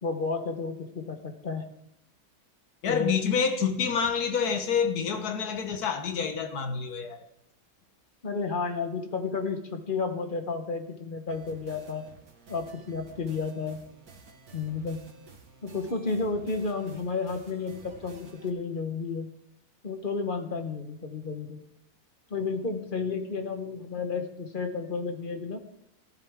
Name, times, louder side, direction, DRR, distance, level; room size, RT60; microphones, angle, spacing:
voice 1, 0.0-1.7 2.9-3.1 8.2-12.0 12.5-13.8 14.5-15.0 15.6-19.3 19.8-21.6 22.3-25.6, left 4 dB, 35° left, 1.2 m, -32 dB
voice 2, 2.8-7.3, left 6 dB, 80° left, 1.6 m, -28 dB
sound 1, 11.3-18.5, right 3 dB, 70° right, 2.0 m, -51 dB
14.5 x 12.0 x 3.6 m
omnidirectional pair, 1.6 m